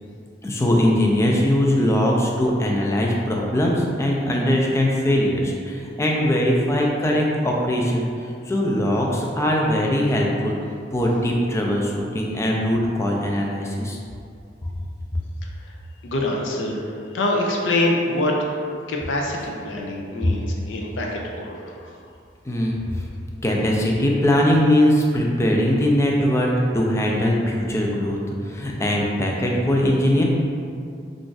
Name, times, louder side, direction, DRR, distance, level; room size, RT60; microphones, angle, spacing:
voice 1, 0.4-10.6 10.9-14.0 20.2-20.3 22.5-23.1 23.4-30.2, left 1 dB, 15° left, -1 dB, 0.3 m, -21 dB
voice 2, 16.0-18.6 18.9-22.0, left 1 dB, 80° left, -1 dB, 0.5 m, -25 dB
2.5 x 2.4 x 3.8 m, 2.3 s
head